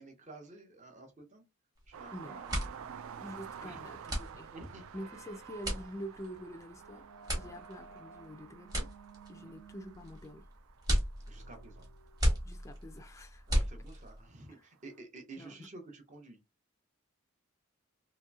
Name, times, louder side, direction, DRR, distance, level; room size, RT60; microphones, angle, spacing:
voice 1, 0.0-1.4 1.9-2.9 3.6-4.1 4.5-4.8 7.4-7.7 9.3-9.6 11.3-11.9 13.5-16.4, right 2 dB, 35° right, 0.8 m, -51 dB
sound 1, 1.8-2.0 2.3-14.2, equal, 15° right, 1.2 m, -35 dB
sound 2, 1.9-13.4 14.8-14.9, right 7 dB, 65° right, 0.3 m, -51 dB
voice 2, 3.2-4.5 4.9-7.1 7.4-8.9 9.3-10.5 12.4-13.5 15.4-15.7, equal, 15° left, 0.3 m, -46 dB
sound 3, 4.9-12.7, right 6 dB, 80° right, 1.1 m, -56 dB
3.0 x 2.9 x 2.3 m
head